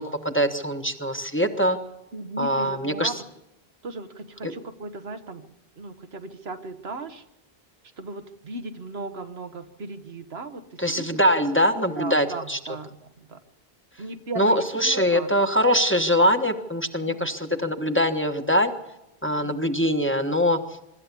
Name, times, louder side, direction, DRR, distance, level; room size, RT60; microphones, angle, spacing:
voice 1, 0.0-1.8 2.4-3.1 4.4-4.5 10.8-12.6 14.4-18.7 19.2-20.6, equal, 10° left, 5 dB, 1.3 m, -23 dB
voice 2, 2.1-3.3 3.8-7.2 8.0-11.1 11.9-13.4 14.0-15.3 17.0-17.3 19.3-19.6, right 3 dB, 75° right, 8 dB, 1.5 m, -37 dB
24.5 x 13.0 x 8.4 m, 0.89 s
omnidirectional pair, 1.0 m